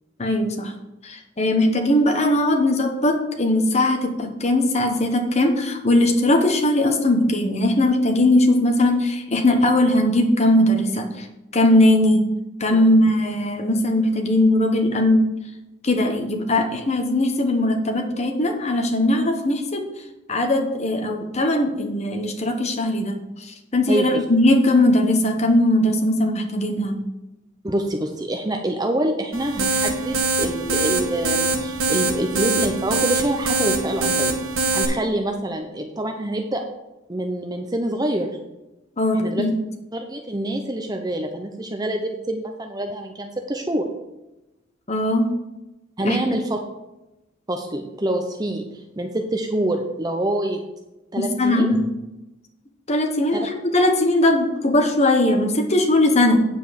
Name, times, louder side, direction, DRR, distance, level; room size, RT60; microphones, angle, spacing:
voice 1, 0.2-0.7 1.0-11.3 11.5-12.2 12.6-15.3 15.8-19.8 20.3-27.0 39.0-39.5 44.9-45.3 46.0-46.2 51.2-51.9 52.9-56.4, left 1 dB, 35° left, 3 dB, 1.1 m, -19 dB
voice 2, 12.7-13.1 23.9-24.2 27.6-34.4 34.7-36.6 37.1-38.3 39.1-39.5 39.9-43.9 46.0-46.6 47.5-50.6 51.1-51.7 53.3-53.4, right 1 dB, 20° right, 3 dB, 0.7 m, -26 dB
sound 1, 29.3-34.9, right 3 dB, 80° right, 1.5 m, -23 dB
9.1 x 5.3 x 6.4 m, 0.98 s
head